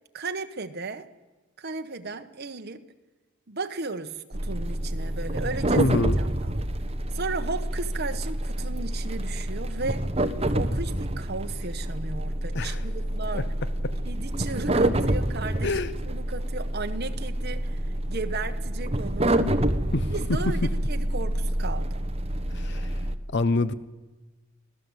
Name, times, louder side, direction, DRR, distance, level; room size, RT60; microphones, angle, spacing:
voice 1, 0.1-1.1 1.6-2.9 3.5-6.5 7.1-10.1 10.5-13.5 14.0-17.8 18.1-19.4 20.1-22.0, right 3 dB, 50° right, 7 dB, 1.3 m, -35 dB
sound 1, 4.3-23.2, right 1 dB, 30° right, 1.2 m, -28 dB
voice 2, 5.8-6.2 12.5-12.8 13.3-13.4 13.8-13.9 15.6-15.9 19.9-20.1 22.5-23.0 23.3-23.7, left 2 dB, 55° left, 15 dB, 0.8 m, -26 dB
25.0 x 17.0 x 8.1 m, 1.2 s
head